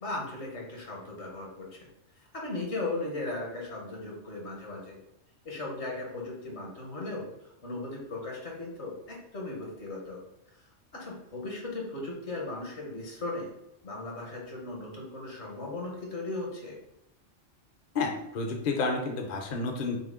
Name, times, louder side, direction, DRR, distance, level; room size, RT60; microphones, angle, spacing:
voice 1, 0.0-1.9 2.2-5.0 5.4-10.2 10.9-13.5 13.8-16.8, left 2 dB, 65° left, -1 dB, 1.4 m, -37 dB
voice 2, 17.9-20.0, left 3 dB, 45° left, 2 dB, 0.6 m, -30 dB
6.0 x 2.0 x 3.6 m, 0.89 s
omnidirectional pair, 1.3 m